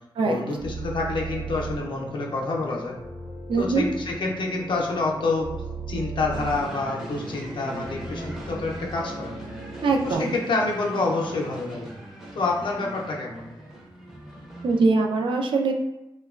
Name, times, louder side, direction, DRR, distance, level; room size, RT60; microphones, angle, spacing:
voice 1, 0.2-3.0 3.5-5.5 5.9-9.4 10.0-11.9 12.3-13.5, left 3 dB, 65° left, -1 dB, 0.5 m, -27 dB
sound 1, 0.6-10.2, right 2 dB, 50° right, 0.7 m, -37 dB
voice 2, 3.5-3.8 9.8-10.3 14.6-15.7, right 3 dB, 80° right, 2 dB, 0.3 m, -22 dB
sound 2, 6.3-14.9, right 1 dB, 5° right, 0.5 m, -40 dB
2.8 x 2.2 x 2.3 m, 0.92 s
wide cardioid pair, 160°, 9 cm